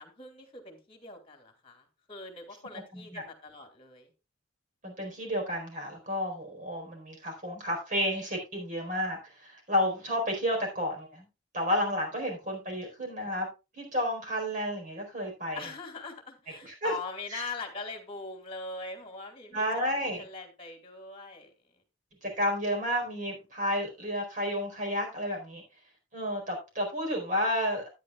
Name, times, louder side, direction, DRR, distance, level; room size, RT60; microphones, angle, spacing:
voice 1, 0.0-4.1 15.5-21.5, left 3 dB, 30° left, 5 dB, 2.4 m, -42 dB
voice 2, 2.9-3.2 4.8-11.3 11.5-13.5 13.8-15.7 16.6-16.9 17.3-17.4 19.5-20.2 22.2-25.6 26.1-27.8, equal, 40° right, 2 dB, 4.5 m, -31 dB
12.5 x 9.6 x 2.4 m, 0.27 s
head